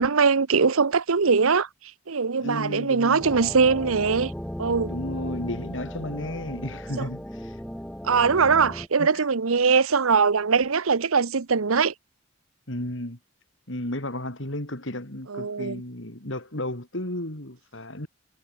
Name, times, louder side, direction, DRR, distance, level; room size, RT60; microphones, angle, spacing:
voice 1, 0.0-1.7 2.1-4.3 4.6-4.9 7.0-7.1 8.0-11.9 15.3-15.8, right 5 dB, 80° right, 0.8 m, -21 dB
voice 2, 2.4-3.3 4.9-7.6 9.0-9.3 12.7-13.2 13.7-18.1, left 1 dB, 60° left, 3.6 m, -33 dB
sound 1, 3.2-8.9, equal, 5° left, 2.4 m, -36 dB
head